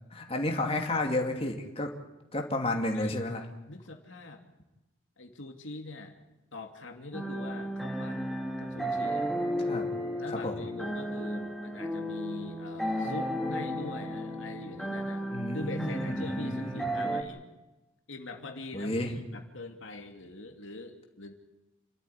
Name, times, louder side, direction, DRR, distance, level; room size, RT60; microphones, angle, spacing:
voice 1, 0.1-1.9 2.3-3.4 9.6-9.9 10.3-10.6 15.3-16.8 18.7-19.2, left 1 dB, 30° left, 2 dB, 2.7 m, -32 dB
voice 2, 3.7-4.4 5.2-6.2 6.5-9.3 10.2-15.2 15.5-17.5 18.1-21.3, left 2 dB, 75° left, 4 dB, 2.7 m, -43 dB
sound 1, 7.1-17.2, equal, ahead, 2.3 m, -33 dB
29.0 x 13.0 x 9.9 m, 1.0 s
head